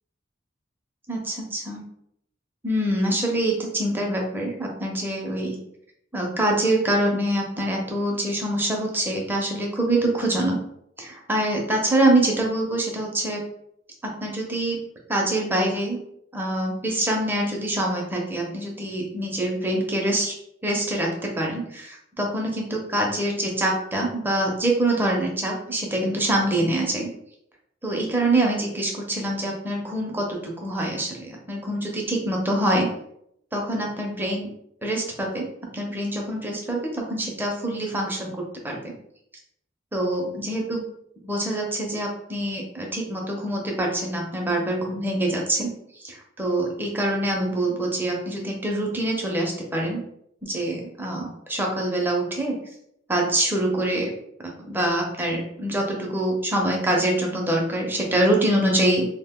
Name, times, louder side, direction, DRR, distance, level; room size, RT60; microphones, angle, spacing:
voice 1, 1.1-1.8 2.6-5.6 6.1-10.6 11.0-13.4 14.0-14.8 15.1-16.0 16.3-20.3 20.6-27.1 27.8-32.9 33.5-34.5 34.8-35.5 35.7-38.9 39.9-40.8 41.2-50.0 50.4-52.6 53.1-54.1 54.4-59.1, right 1 dB, 10° right, 0 dB, 0.5 m, -25 dB
2.4 x 2.1 x 3.5 m, 0.74 s
head